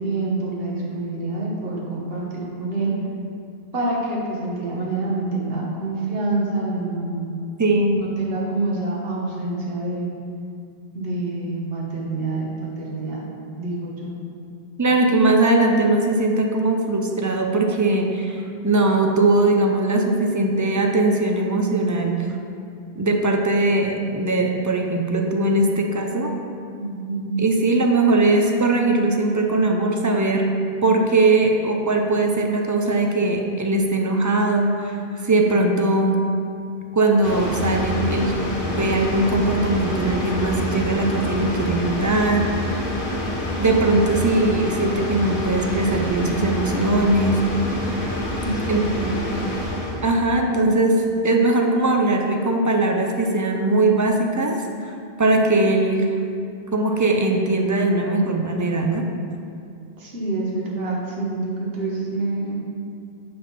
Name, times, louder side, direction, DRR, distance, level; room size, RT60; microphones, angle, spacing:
voice 1, 0.0-2.9 3.7-7.4 8.0-10.1 10.9-13.2 13.6-14.1 26.8-27.4 48.4-49.2 50.5-50.7 60.0-62.6, right 2 dB, 65° right, -4 dB, 1.5 m, -27 dB
voice 2, 7.6-8.0 14.8-22.3 23.0-26.3 27.4-30.5 30.8-36.2 36.9-38.4 38.6-42.5 43.6-47.4 48.7-48.8 50.0-56.1 56.7-59.0, right 2 dB, 25° right, 2 dB, 0.4 m, -20 dB
sound 1, 37.2-50.2, left 1 dB, 55° left, 1.4 m, -27 dB
7.7 x 3.6 x 5.7 m, 2.4 s
omnidirectional pair, 1.1 m